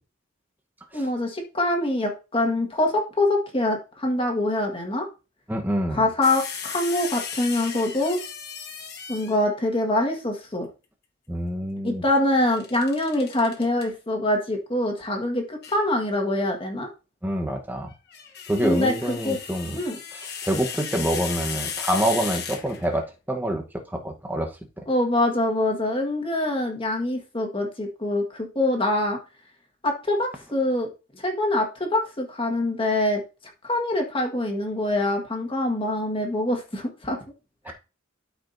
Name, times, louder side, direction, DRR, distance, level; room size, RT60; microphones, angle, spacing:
voice 1, 0.9-5.1 5.9-8.2 9.1-10.7 11.8-16.9 18.6-19.4 19.7-20.0 24.9-29.2 29.8-30.9 31.2-33.2 33.6-37.2, left 1 dB, 25° left, 2 dB, 1.5 m, -24 dB
voice 2, 5.5-6.0 11.3-12.0 17.2-17.9 18.5-19.8 20.1-24.5 24.8-24.9 37.6-37.7, right 1 dB, 10° right, 3 dB, 1.0 m, -27 dB
sound 1, 6.2-9.5 12.4-13.9 15.6-15.8 17.9-23.1, left 7 dB, 55° left, 1.0 m, -35 dB
13.0 x 5.0 x 2.6 m, 0.30 s
head